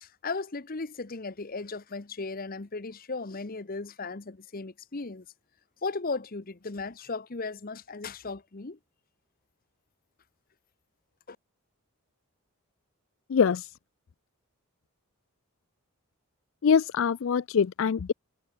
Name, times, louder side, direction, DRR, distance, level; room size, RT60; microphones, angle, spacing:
voice 1, 0.0-5.2 5.8-8.8 11.3-11.4, left 3 dB, 40° left, 0.9 m, -36 dB
voice 2, 13.3-13.7 16.6-18.1, left 6 dB, 60° left, 0.4 m, -24 dB
head